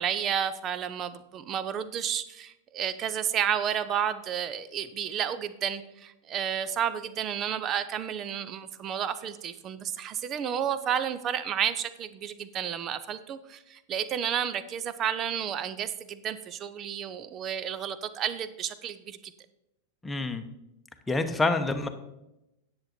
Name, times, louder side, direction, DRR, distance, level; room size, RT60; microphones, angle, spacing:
voice 1, 0.0-19.2, right 9 dB, 30° right, 14 dB, 0.7 m, -31 dB
voice 2, 20.0-20.4 21.1-21.9, left 2 dB, 10° left, 7 dB, 1.0 m, -27 dB
10.5 x 7.7 x 4.3 m, 0.90 s
figure-of-eight pair, 90°, 0 cm